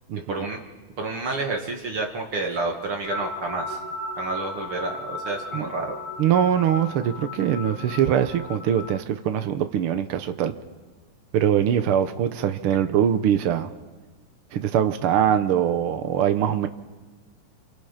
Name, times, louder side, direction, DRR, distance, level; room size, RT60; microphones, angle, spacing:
voice 1, 0.3-0.6 1.0-3.8 4.2-6.0, right 3 dB, 45° right, 2 dB, 2.6 m, -29 dB
sound 1, 3.1-9.0, left 2 dB, 85° left, 3.9 m, -35 dB
voice 2, 6.2-10.5 11.3-13.7 14.5-16.7, right 9 dB, 85° right, 9 dB, 1.2 m, -22 dB
29.0 x 26.5 x 5.9 m, 1.3 s
omnidirectional pair, 3.9 m